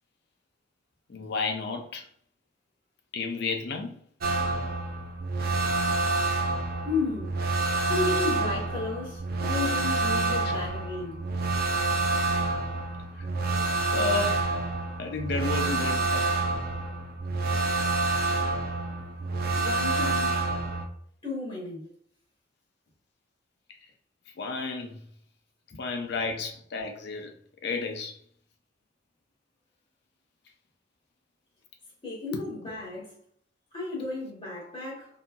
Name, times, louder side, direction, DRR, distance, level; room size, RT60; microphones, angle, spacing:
voice 1, 1.1-2.1 3.1-4.0 10.4-10.5 13.2-13.3 13.9-14.5 15.0-16.3 24.3-25.0 25.8-27.3 27.6-28.2 32.3-32.4, left 4 dB, 60° left, 0.5 m, -32 dB
sound 1, 4.2-20.9, right 3 dB, 55° right, 0.5 m, -28 dB
voice 2, 6.8-7.4 7.8-11.2 19.5-20.4 21.2-21.9 25.7-25.8 32.0-33.1 33.7-35.2, left 3 dB, 30° left, 0.9 m, -33 dB
2.8 x 2.6 x 2.2 m
head